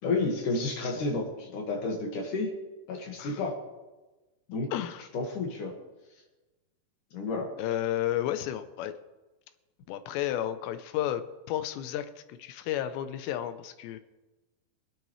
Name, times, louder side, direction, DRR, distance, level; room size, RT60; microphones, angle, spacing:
voice 1, 0.0-2.5 2.9-3.6 4.5-4.7 5.1-5.7 7.1-7.5, left 3 dB, 55° left, 1 dB, 2.9 m, -31 dB
voice 2, 4.7-5.0 7.6-9.0 9.9-14.0, left 12 dB, 80° left, 10 dB, 2.9 m, -32 dB
26.5 x 8.9 x 3.3 m, 1.1 s
omnidirectional pair, 5.2 m